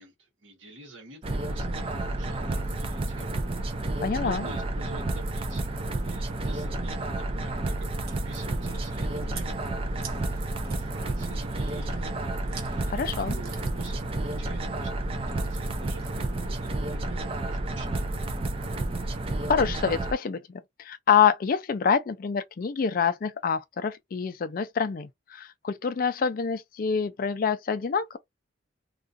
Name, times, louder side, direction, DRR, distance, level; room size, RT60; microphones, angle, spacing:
voice 1, 0.0-3.5 3.8-7.9 8.2-9.5 10.6-12.4 12.6-13.0 13.3-14.9 15.2-18.3, right 3 dB, 75° right, 1.0 m, -48 dB
sound 1, 1.2-20.1, right 2 dB, 30° right, 0.4 m, -31 dB
voice 2, 4.0-4.5 12.9-13.4 19.5-28.2, left 6 dB, 45° left, 0.3 m, -26 dB
Chewing mastication, 7.8-16.7, right 6 dB, 50° right, 0.7 m, -49 dB
2.4 x 2.3 x 2.5 m
head